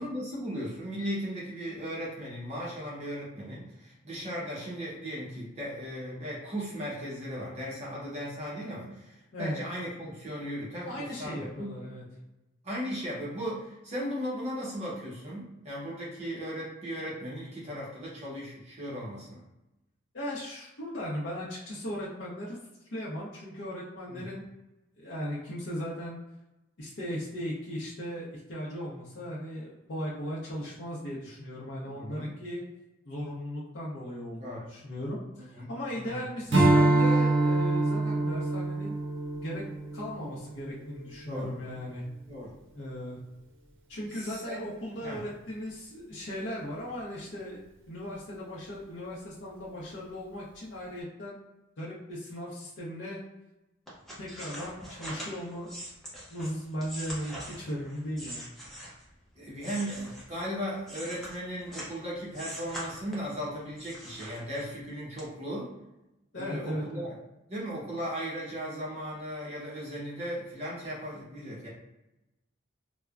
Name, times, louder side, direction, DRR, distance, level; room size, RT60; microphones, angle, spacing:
voice 1, 0.0-11.7 12.6-19.4 24.1-24.3 31.9-32.3 34.4-34.6 35.3-36.2 41.3-41.5 42.3-42.5 44.1-44.7 45.0-45.2 59.4-65.7 66.4-67.1 67.5-71.7, equal, 30° right, -6 dB, 0.8 m, -37 dB
voice 2, 9.3-9.6 10.9-12.0 20.1-22.6 22.9-24.4 25.0-26.2 26.8-32.6 33.0-38.9 39.3-39.6 39.9-42.0 42.7-43.2 43.9-51.4 51.8-53.2 54.2-55.7 56.3-58.5 66.3-67.0, equal, 60° left, -6 dB, 0.6 m, -37 dB
Strum, 36.5-41.2, right 2 dB, 75° right, 0.6 m, -25 dB
sound 1, 53.9-59.1 59.6-62.0 62.3-63.4 63.8-64.8 65.2-65.3, equal, ahead, 0.5 m, -43 dB
3.2 x 2.1 x 2.4 m, 0.95 s
head